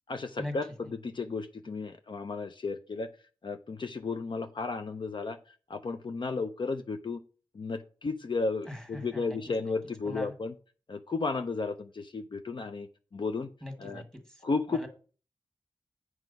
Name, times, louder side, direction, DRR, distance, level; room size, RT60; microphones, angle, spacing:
voice 1, 0.1-3.1 3.4-5.4 5.7-7.2 7.5-10.5 10.9-12.9 13.1-13.5 13.8-14.0 14.4-14.9, left 4 dB, 60° left, 7 dB, 0.6 m, -33 dB
voice 2, 8.6-9.7 10.0-10.3 13.6-14.4 14.7-14.9, left 1 dB, 5° left, 5 dB, 1.7 m, -41 dB
8.1 x 4.7 x 5.3 m, 0.38 s
wide cardioid pair, 100°, 9 cm